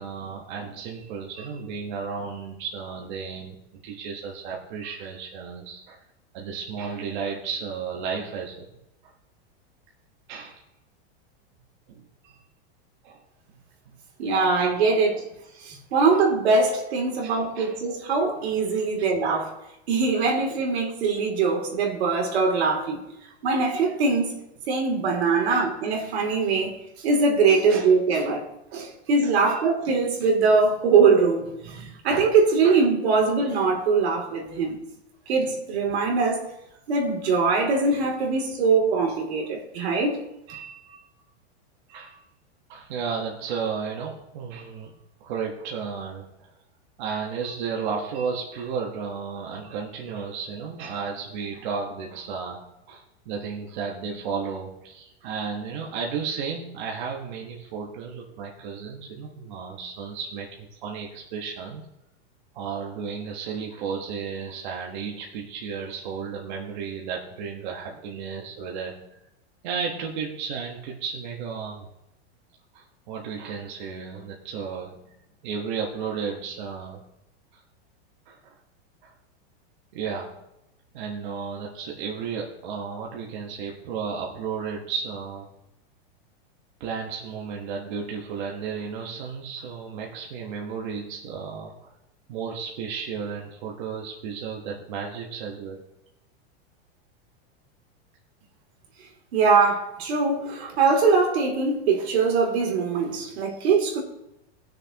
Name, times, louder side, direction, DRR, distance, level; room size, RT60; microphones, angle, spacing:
voice 1, 0.0-6.0 6.3-8.6 10.3-10.6 11.9-12.3 13.0-13.2 17.2-17.8 19.0-19.1 25.5-25.7 27.7-27.9 29.4-29.6 40.5-41.0 41.9-42.2 42.7-44.9 45.2-46.3 47.0-52.6 52.9-61.8 62.5-69.0 69.6-71.9 72.7-75.0 75.4-77.0 78.3-78.5 79.0-79.1 79.9-80.3 80.9-85.5 86.8-91.7 92.3-95.8, right 6 dB, 50° right, 1.3 m, -33 dB
voice 2, 14.2-15.3 15.6-19.5 19.9-23.0 23.4-24.3 24.7-26.8 27.0-34.8 35.3-36.5 36.9-40.2 99.3-104.0, right 4 dB, 80° right, 2.8 m, -22 dB
18.5 x 6.6 x 2.9 m
supercardioid pair, 170°, 31 cm